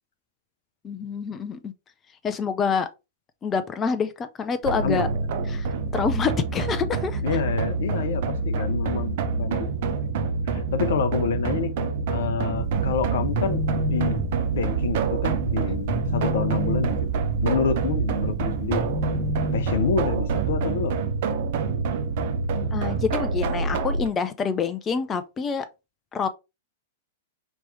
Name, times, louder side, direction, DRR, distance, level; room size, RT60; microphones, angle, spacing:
voice 1, 0.8-1.7 2.2-2.9 3.4-5.1 5.5-5.7 5.9-7.2 22.7-25.7 26.1-26.3, left 6 dB, 20° left, 0.5 m, -27 dB
sound 1, 4.6-24.1, right 4 dB, 55° right, 0.7 m, -27 dB
voice 2, 7.2-9.7 10.5-11.7 12.1-14.2 14.5-17.0 17.4-18.9 19.5-21.0, left 6 dB, 60° left, 0.7 m, -27 dB
sound 2, 12.6-20.6, right 4 dB, 25° right, 1.0 m, -29 dB
5.3 x 3.0 x 3.2 m
figure-of-eight pair, 100°, 0 cm